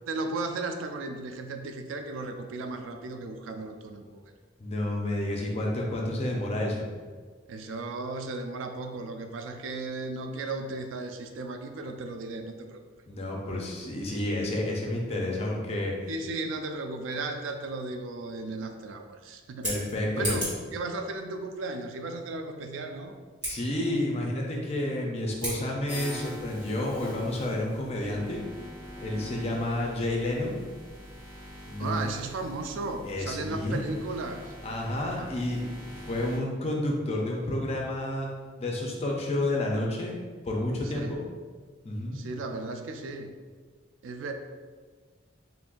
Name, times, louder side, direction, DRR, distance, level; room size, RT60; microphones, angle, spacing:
voice 1, 0.1-4.2 7.5-12.8 16.1-19.7 20.1-23.1 31.8-34.5 35.2-35.3 40.9-41.2 42.1-43.3 44.0-44.3, right 3 dB, 80° right, 6 dB, 0.3 m, -35 dB
voice 2, 4.6-6.8 13.1-15.9 19.6-20.4 23.4-28.4 29.0-30.5 31.7-32.0 33.0-33.8 34.6-35.7 36.1-38.3 38.6-40.1 40.4-41.2 41.8-42.2, left 1 dB, 30° left, -1 dB, 0.5 m, -30 dB
Scissors, 19.4-20.7 23.3-23.5 25.3-25.6, right 1 dB, 25° right, 1.4 m, -34 dB
sound 1, 25.9-36.4, left 1 dB, 10° right, 0.6 m, -44 dB
2.6 x 2.4 x 3.7 m, 1.5 s
head